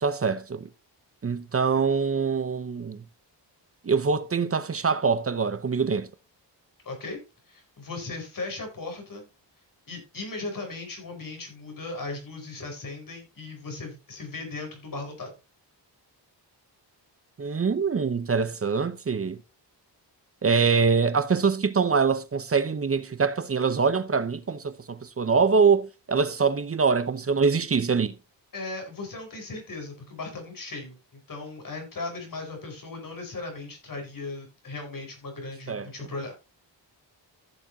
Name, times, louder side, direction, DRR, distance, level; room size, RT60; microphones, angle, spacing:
voice 1, 0.0-0.7 1.2-3.0 3.8-6.1 17.4-19.4 20.4-28.1 35.7-35.9, right 5 dB, 30° right, 0.7 m, -24 dB
voice 2, 6.8-7.2 7.5-9.3 9.9-15.3 28.5-36.3, left 3 dB, 50° left, 4.8 m, -37 dB
15.0 x 7.1 x 2.8 m
wide cardioid pair, 130°, 44 cm